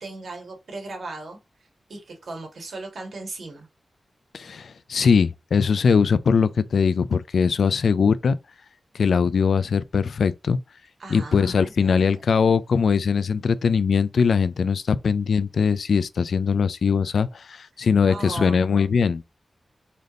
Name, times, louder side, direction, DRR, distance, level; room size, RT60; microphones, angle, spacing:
voice 1, 0.0-3.7 11.0-12.1 18.1-18.6, right 2 dB, 80° right, 1.9 m, -37 dB
voice 2, 4.3-8.4 8.9-10.6 11.1-19.3, left 6 dB, 90° left, 0.4 m, -21 dB
4.1 x 3.4 x 3.8 m
wide cardioid pair, 150°, 0 cm